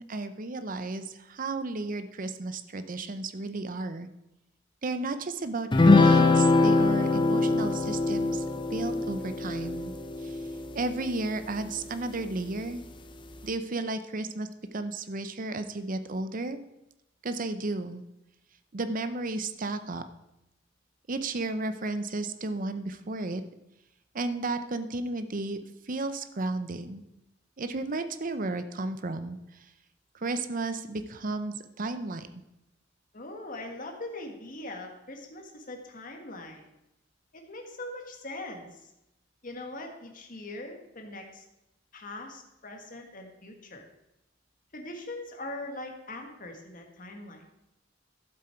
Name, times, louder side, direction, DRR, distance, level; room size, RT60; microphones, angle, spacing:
voice 1, 0.0-4.1 4.8-8.4 8.7-9.9 10.2-10.3 10.7-12.8 13.4-14.5 14.7-16.6 17.2-18.0 18.7-20.0 21.1-23.4 24.1-25.6 25.9-27.0 27.6-29.4 30.2-32.3, right 2 dB, 45° right, 10 dB, 0.7 m, -33 dB
sound 1, 5.7-11.4, left 3 dB, 25° left, 0.7 m, -23 dB
voice 2, 33.1-36.6 37.3-38.9 39.4-41.4 41.9-43.9 44.7-47.4, left 2 dB, 45° left, 3 dB, 1.7 m, -41 dB
12.0 x 7.7 x 4.5 m, 0.91 s
head